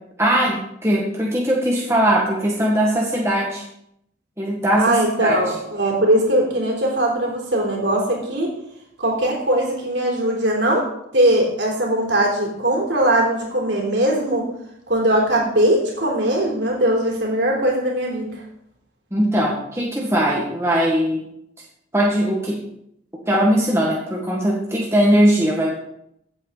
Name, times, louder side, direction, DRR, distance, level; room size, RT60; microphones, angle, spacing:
voice 1, 0.2-3.6 4.4-5.4 19.1-21.3 21.9-22.6 23.3-25.8, equal, 15° right, -3 dB, 1.7 m, -20 dB
voice 2, 4.8-8.5 9.0-10.8 11.1-14.5 14.9-18.3, right 1 dB, 60° right, -1 dB, 3.6 m, -20 dB
14.5 x 8.4 x 4.0 m, 0.77 s
head